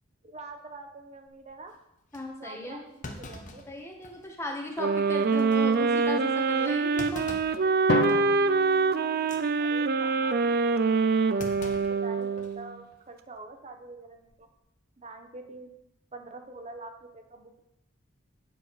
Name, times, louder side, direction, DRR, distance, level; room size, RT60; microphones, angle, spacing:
voice 1, 0.2-1.8 2.4-3.6 9.4-10.7 11.6-14.5 15.0-15.7 16.1-17.6, right 2 dB, 35° right, 5 dB, 1.2 m, -45 dB
Thump thud, 1.3-1.5 2.1-2.2 3.0-4.4 4.7-4.8 5.3-5.5 7.0-7.6 8.1-8.3 9.1-9.4 11.4-12.6 12.9-13.0 14.1-14.5, left 2 dB, 40° left, 1.0 m, -43 dB
voice 2, 2.1-2.9 3.7-7.2, left 1 dB, 15° left, 0 dB, 1.6 m, -36 dB
sound 1, 4.8-12.7, right 4 dB, 50° right, 0.5 m, -25 dB
Drum, 7.9-9.9, left 2 dB, 60° left, 0.5 m, -31 dB
9.1 x 7.0 x 4.9 m, 0.83 s
head